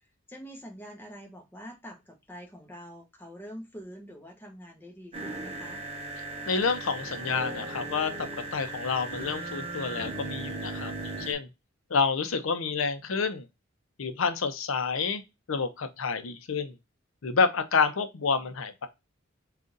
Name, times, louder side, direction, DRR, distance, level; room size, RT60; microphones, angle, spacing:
voice 1, 0.0-5.8, equal, 10° left, 0.9 m, -45 dB
sound 1, 5.1-11.3, right 2 dB, 30° right, 0.8 m, -37 dB
voice 2, 6.5-11.5 11.9-13.5 14.0-15.2 15.5-16.8 17.2-18.9, left 5 dB, 90° left, 0.6 m, -29 dB
3.8 x 2.4 x 3.9 m
head